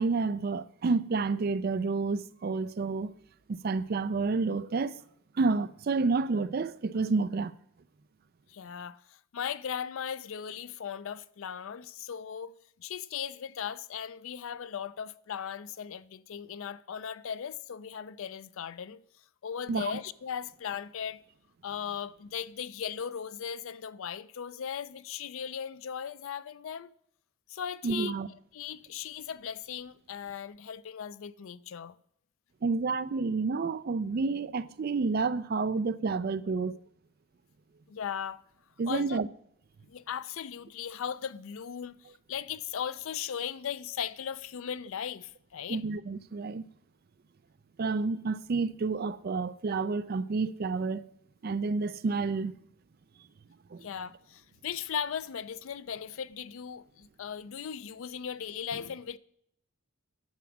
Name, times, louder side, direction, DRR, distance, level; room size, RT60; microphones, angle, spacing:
voice 1, 0.0-3.1 3.5-5.0 5.4-7.6 19.7-19.9 27.8-28.3 32.6-36.8 38.8-39.3 45.7-46.7 47.8-51.1 51.4-52.5 53.7-53.8, right 4 dB, 45° right, 0.3 m, -29 dB
voice 2, 8.5-12.5 12.8-19.0 19.4-21.2 21.6-26.9 27.5-28.2 28.5-32.0 37.9-38.4 38.9-39.2 39.9-45.8 53.8-59.2, left 8 dB, 65° left, 0.4 m, -38 dB
10.5 x 6.0 x 5.9 m
head